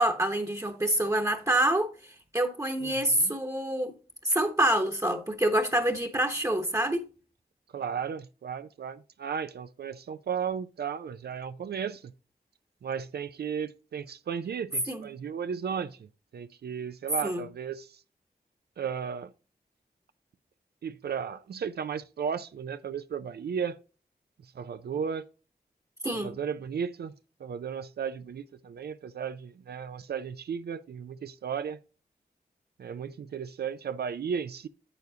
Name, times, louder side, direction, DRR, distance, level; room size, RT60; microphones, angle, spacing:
voice 1, 0.0-1.9 2.3-3.9 4.2-7.0 14.9-15.1 17.2-17.4 26.0-26.3, right 1 dB, 20° right, 1.0 m, -26 dB
voice 2, 2.8-3.4 7.7-12.1 12.8-18.0 18.8-19.3 20.8-23.8 24.6-25.3 26.1-27.1 27.4-31.8 32.8-34.7, right 7 dB, 75° right, 0.4 m, -35 dB
8.0 x 7.0 x 2.8 m
cardioid pair, 55°, 17 cm